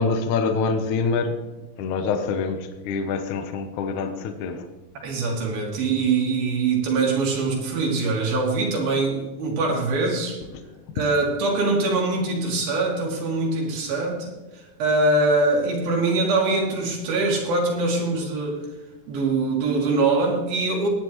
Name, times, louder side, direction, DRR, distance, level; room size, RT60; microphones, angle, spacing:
voice 1, 0.0-1.4 1.8-4.7, left 4 dB, 70° left, 7 dB, 2.1 m, -25 dB
voice 2, 5.0-10.4 11.0-14.3 14.8-18.6 19.1-20.9, right 3 dB, 85° right, -1 dB, 4.3 m, -23 dB
18.0 x 10.0 x 3.1 m, 1.1 s
omnidirectional pair, 4.1 m